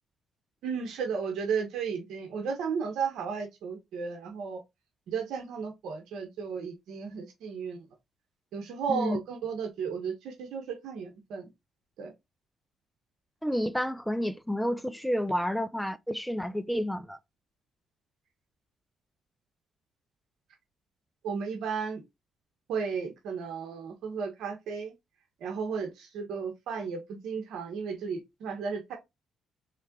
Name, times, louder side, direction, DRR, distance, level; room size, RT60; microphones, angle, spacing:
voice 1, 0.6-4.6 5.1-7.8 8.5-11.5 12.0-12.1 21.2-22.0 22.7-24.9 25.4-29.0, right 6 dB, 80° right, 1.1 m, -34 dB
voice 2, 8.9-9.2 13.4-17.2, equal, 5° left, 0.5 m, -30 dB
4.3 x 3.3 x 3.7 m
cardioid pair, 90°, 0 cm